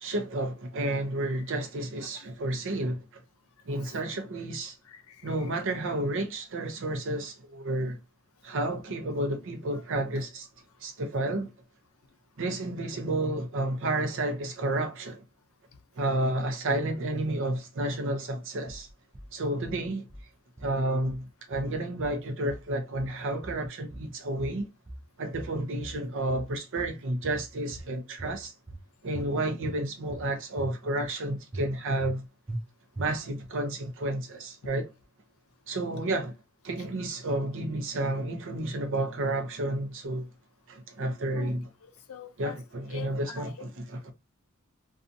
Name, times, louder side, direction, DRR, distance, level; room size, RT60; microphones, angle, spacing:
voice 1, 0.0-3.1 3.7-4.7 5.2-8.0 8.4-10.4 10.8-11.5 12.4-15.2 16.0-18.9 19.3-20.1 20.6-24.7 25.2-28.5 29.0-32.3 33.0-34.9 35.7-36.4 36.6-40.3 40.7-41.7 42.4-44.1, right 1 dB, 60° right, 0.6 m, -31 dB
voice 2, 4.9-5.3 41.3-41.5 41.8-42.6 42.9-43.7, left 6 dB, 70° left, 0.5 m, -43 dB
sound 1, 18.7-19.3 19.6-20.3 20.6-21.3 21.5-22.2 22.5-23.2 23.4-24.1 24.4-25.1 25.3-26.0 26.3-27.0 27.2-27.9 28.2-28.8 29.1-29.8 30.1-30.7 31.0-31.2 31.5-32.2 32.5-32.6 33.0-33.5, right 1 dB, 15° right, 0.4 m, -41 dB
2.7 x 2.4 x 2.5 m
head